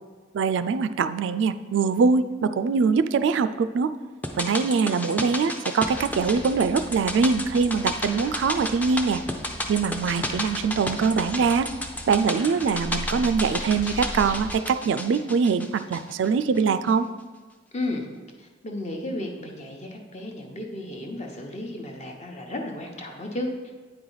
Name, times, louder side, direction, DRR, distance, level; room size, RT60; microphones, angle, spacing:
voice 1, 0.3-3.9 4.4-9.2 9.7-11.7 12.1-17.1, right 5 dB, 70° right, 11 dB, 0.3 m, -23 dB
sound 1, 4.2-16.6 16.9-17.0, left 1 dB, 10° left, 0.5 m, -33 dB
sound 2, 5.8-14.5, equal, 90° left, 1.3 m, -39 dB
voice 2, 17.7-18.1 18.4-23.7, left 1 dB, 40° left, 2 dB, 0.9 m, -33 dB
8.9 x 4.7 x 3.9 m, 1.4 s
head